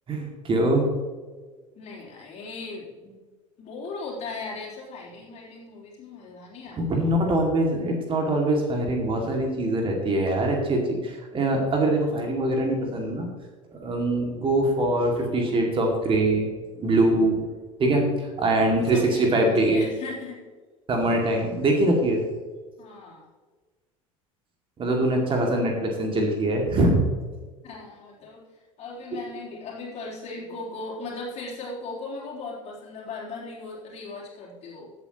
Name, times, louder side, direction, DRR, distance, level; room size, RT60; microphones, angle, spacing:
voice 1, 0.1-0.9 6.8-13.3 13.7-16.5 16.8-17.5 17.8-19.0 19.3-19.8 20.9-22.2 24.8-27.0, right 1 dB, 30° right, 1 dB, 2.4 m, -23 dB
voice 2, 1.8-3.1 3.6-7.0 18.8-20.4 22.8-23.3 27.6-28.4 28.8-34.9, left 3 dB, 40° left, -4 dB, 3.8 m, -37 dB
15.5 x 8.4 x 3.1 m, 1.4 s
figure-of-eight pair, 70°, 17 cm